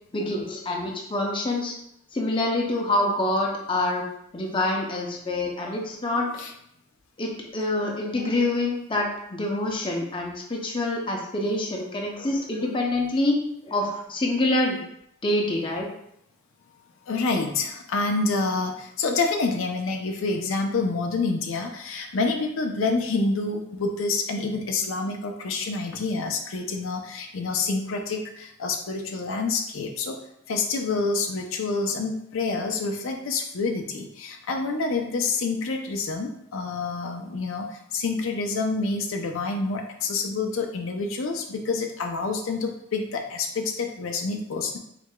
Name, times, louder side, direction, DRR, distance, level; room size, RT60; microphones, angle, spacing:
voice 1, 0.1-1.7 2.1-4.0 4.3-6.3 7.2-13.4 13.6-14.8 15.2-15.9, left 2 dB, 25° left, 0 dB, 0.6 m, -26 dB
voice 2, 17.1-30.2 30.5-44.8, left 3 dB, 70° left, 3 dB, 0.5 m, -27 dB
4.8 x 3.3 x 2.2 m, 0.74 s
head